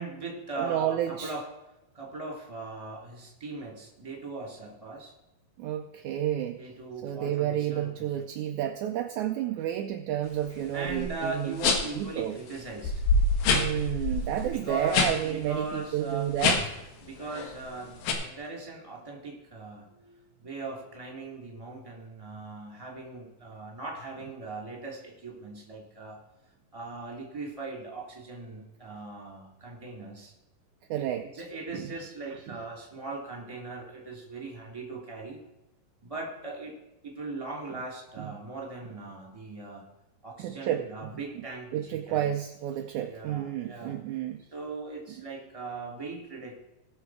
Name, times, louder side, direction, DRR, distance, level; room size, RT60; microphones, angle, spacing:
voice 1, 0.0-1.5 1.9-5.1 6.5-8.1 10.7-13.0 14.5-16.6 17.0-26.2 26.7-30.3 30.9-35.4 36.0-36.7 37.0-39.9 40.2-42.3 43.1-44.0 44.5-46.5, right 3 dB, 10° right, -1 dB, 2.5 m, -39 dB
voice 2, 0.6-1.3 5.6-6.6 7.0-11.6 11.9-12.4 13.4-16.6 30.9-31.4 31.7-31.9 32.3-32.6 38.2-38.3 40.4-41.1 41.3-41.4 41.7-44.4 45.1-45.2, right 11 dB, 80° right, 6 dB, 1.7 m, -31 dB
sound 1, 10.9-11.1 11.6-12.0 12.5-12.6 12.8-15.1 15.4-15.6 16.3-16.8 17.2-17.6 18.0-18.1, left 3 dB, 85° left, 3.2 m, -25 dB
19.0 x 6.6 x 4.8 m, 0.95 s
omnidirectional pair, 4.1 m